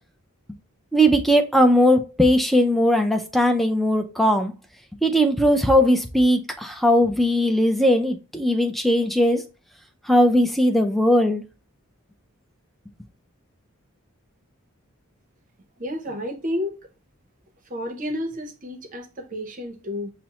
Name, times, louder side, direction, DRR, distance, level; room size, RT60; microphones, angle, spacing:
voice 1, 0.9-4.5 5.0-9.4 10.1-11.4, equal, ahead, 0.4 m, -19 dB
voice 2, 15.8-16.8 17.7-20.1, left 1 dB, 35° right, 0.7 m, -31 dB
5.8 x 2.1 x 2.9 m
head